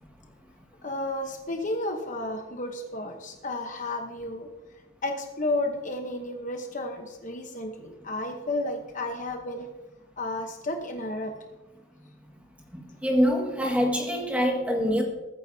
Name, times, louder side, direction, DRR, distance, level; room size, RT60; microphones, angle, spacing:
voice 1, 0.8-4.5 5.0-9.7 10.2-11.3, left 2 dB, 40° left, 4 dB, 1.0 m, -32 dB
voice 2, 13.0-15.0, equal, 5° right, 0 dB, 1.9 m, -24 dB
21.0 x 9.8 x 2.8 m, 1.1 s
head